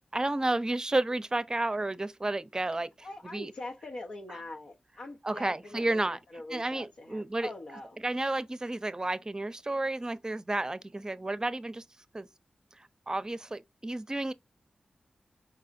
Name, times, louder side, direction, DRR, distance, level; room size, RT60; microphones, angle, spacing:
voice 1, 0.1-3.5 5.2-6.2 6.5-7.5 8.0-11.8 12.1-12.3 12.7-14.3, right 2 dB, 30° right, 0.6 m, -31 dB
voice 2, 3.0-8.1, left 2 dB, 75° left, 0.7 m, -43 dB
4.8 x 4.1 x 2.5 m
cardioid pair, 45°, 2 cm